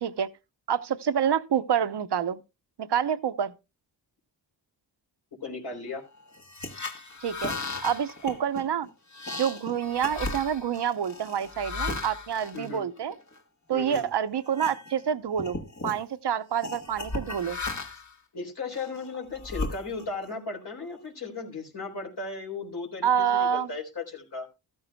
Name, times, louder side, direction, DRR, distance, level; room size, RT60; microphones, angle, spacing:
voice 1, 0.7-2.4 2.8-3.5 7.2-7.5 7.8-8.9 9.4-13.1 13.7-17.6 23.0-23.7, right 8 dB, 60° right, 0.9 m, -27 dB
voice 2, 5.4-6.0 12.5-12.8 13.7-14.1 18.3-24.5, left 4 dB, 55° left, 3.8 m, -36 dB
sound 1, 6.3-13.4 13.9-14.1 14.5-15.1 15.3-16.0 16.6-18.1 18.7-20.3, left 3 dB, 40° left, 1.5 m, -36 dB
14.0 x 13.5 x 2.3 m
wide cardioid pair, 100°, 45 cm